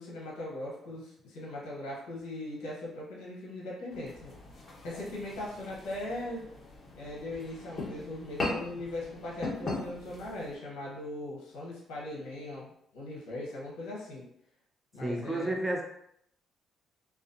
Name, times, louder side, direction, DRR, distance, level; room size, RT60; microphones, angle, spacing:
voice 1, 0.0-4.4 4.8-6.5 6.9-14.3 14.9-15.6, left 1 dB, 80° left, -5 dB, 0.7 m, -39 dB
sound 1, 3.9-10.6, left 2 dB, 45° left, 1.1 m, -40 dB
voice 2, 15.0-15.8, right 1 dB, 20° right, 0 dB, 0.6 m, -31 dB
2.4 x 2.3 x 2.5 m, 0.74 s
supercardioid pair, 65°, 0 cm